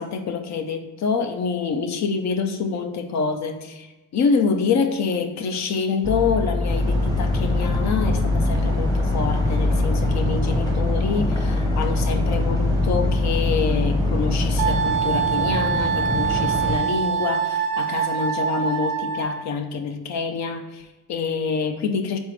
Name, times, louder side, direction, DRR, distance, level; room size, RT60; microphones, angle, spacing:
voice 1, 0.0-22.2, left 5 dB, 65° left, 7 dB, 0.6 m, -26 dB
sound 1, 6.0-14.8, left 2 dB, 15° right, 0.4 m, -24 dB
sound 2, 6.6-16.8, equal, 15° left, 0.9 m, -27 dB
Wind instrument woodwind instrument, 14.6-19.4, right 7 dB, 90° right, 0.6 m, -24 dB
4.0 x 3.6 x 3.1 m, 1.1 s
cardioid pair, 90°, 30 cm